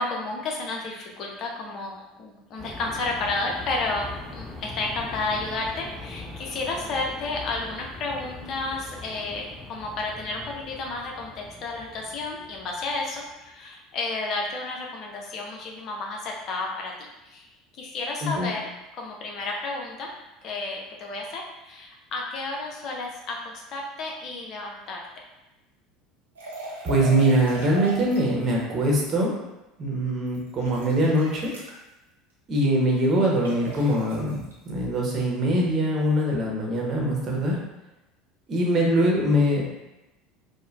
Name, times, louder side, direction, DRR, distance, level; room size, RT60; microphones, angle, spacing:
voice 1, 0.0-18.7 19.0-20.1 20.4-25.0, left 3 dB, 45° left, 0 dB, 0.6 m, -32 dB
sound 1, 2.6-13.4, left 2 dB, ahead, 0.8 m, -41 dB
sound 2, 26.4-28.4 30.3-31.8 33.4-34.5, right 2 dB, 80° right, 0.8 m, -38 dB
voice 2, 26.8-29.3 29.8-31.5 32.5-34.4 34.6-37.5 38.5-39.6, right 1 dB, 35° right, -2 dB, 1.0 m, -23 dB
4.9 x 2.1 x 2.5 m, 0.98 s
figure-of-eight pair, 70°, 0 cm